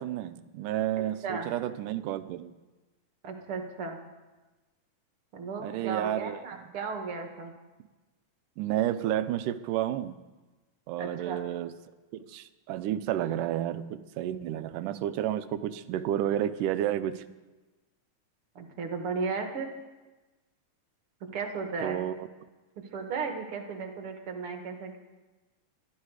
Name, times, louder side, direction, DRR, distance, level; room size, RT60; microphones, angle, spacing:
voice 1, 0.0-2.5 5.6-6.6 8.6-10.2 10.9-11.8 12.1-17.2 21.8-22.3, right 12 dB, 85° right, 12 dB, 2.3 m, -31 dB
voice 2, 3.2-4.0 5.3-7.5 11.0-11.4 18.6-19.7 21.3-22.0 22.8-25.0, right 5 dB, 50° right, 4 dB, 2.0 m, -35 dB
21.5 x 12.5 x 4.8 m, 1.2 s
omnidirectional pair, 3.6 m